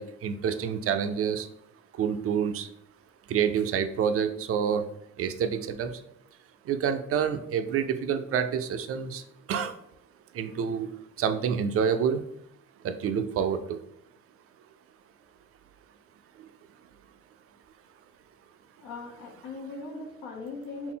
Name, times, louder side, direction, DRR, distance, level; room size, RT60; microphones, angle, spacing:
voice 1, 0.0-1.5 2.0-2.7 3.3-4.8 5.2-5.9 6.7-9.2 9.5-9.7 10.3-10.9 11.2-12.2 12.8-13.8, right 7 dB, 50° right, 9 dB, 0.4 m, -27 dB
voice 2, 18.8-20.9, left 3 dB, 85° left, -1 dB, 0.8 m, -39 dB
3.9 x 2.0 x 3.7 m, 0.73 s
cardioid pair, 90°, 30 cm